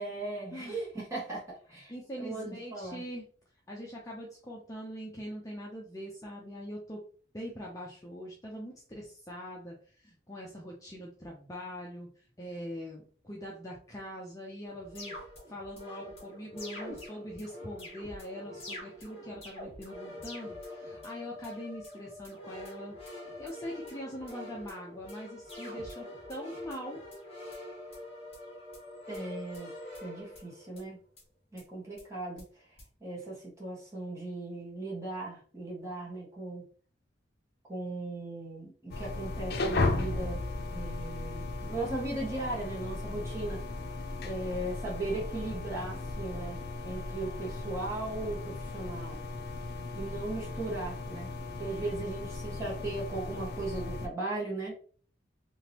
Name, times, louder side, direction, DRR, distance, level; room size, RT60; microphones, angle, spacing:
voice 1, 0.0-1.4 1.7-3.0 29.1-29.7 30.0-31.0 31.5-32.7 33.0-36.6 37.7-40.4 40.7-43.6 44.2-49.2 49.9-51.3 51.6-54.7, right 2 dB, 15° right, -5 dB, 1.5 m, -37 dB
voice 2, 1.9-3.3 3.7-7.0 7.3-15.2 15.5-23.0 23.4-27.0, equal, 20° left, -2 dB, 0.6 m, -42 dB
sound 1, 14.7-30.9 31.2-31.3 31.6-31.7 32.0-32.1 32.4-32.5 32.8-32.9, left 1 dB, 35° left, 1.6 m, -45 dB
sound 2, 38.9-54.1, left 2 dB, 60° left, 0.6 m, -36 dB
3.5 x 2.9 x 2.9 m, 0.43 s
head